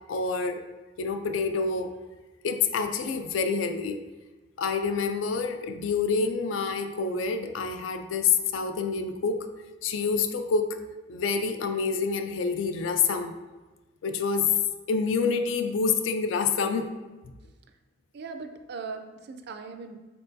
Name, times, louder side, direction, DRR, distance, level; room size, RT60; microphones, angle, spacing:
voice 1, 0.1-0.6 1.0-1.9 2.4-4.0 4.6-9.5 9.8-10.8 11.1-13.3 14.0-14.5 14.9-16.9, left 5 dB, 85° left, 8 dB, 0.4 m, -27 dB
voice 2, 18.1-20.0, right 4 dB, 60° right, 7 dB, 0.4 m, -39 dB
4.4 x 3.8 x 2.7 m, 1.2 s
head